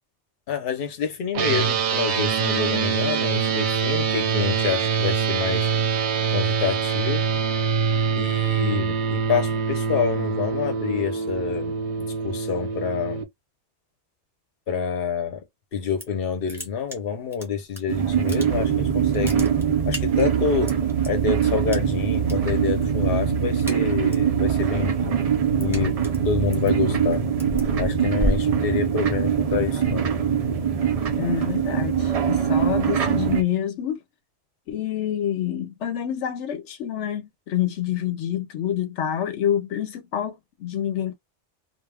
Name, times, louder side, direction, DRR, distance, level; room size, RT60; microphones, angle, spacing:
voice 1, 0.5-5.7 6.3-7.4 8.1-13.3 14.7-15.4 15.7-19.5 19.9-20.8 21.1-27.2 27.5-30.1, left 6 dB, 55° left, 0.9 m, -27 dB
sound 1, 1.3-13.2, right 6 dB, 75° right, 0.9 m, -24 dB
sound 2, 15.7-16.2 16.5-17.8 18.1-18.8 19.1-21.1 21.7-22.3 22.6-23.0 23.3-24.3 24.7-29.2, left 1 dB, 5° right, 0.7 m, -33 dB
sound 3, 17.9-33.4, right 7 dB, 50° right, 0.4 m, -23 dB
voice 2, 31.1-34.0 34.7-41.1, left 10 dB, 80° left, 0.9 m, -27 dB
2.4 x 2.3 x 3.3 m
omnidirectional pair, 1.2 m